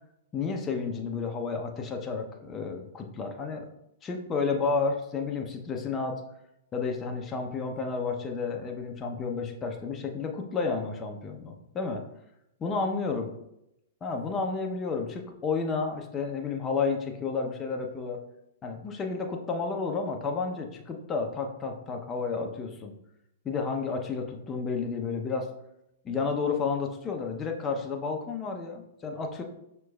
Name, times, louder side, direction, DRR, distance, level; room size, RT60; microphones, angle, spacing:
voice 1, 0.3-3.7 4.0-6.2 6.7-12.0 12.6-13.3 14.0-18.2 18.6-22.9 23.4-25.5 26.0-29.4, left 4 dB, 20° left, 2 dB, 0.6 m, -31 dB
6.0 x 2.9 x 2.3 m, 0.83 s
hypercardioid pair, 110°, 0 cm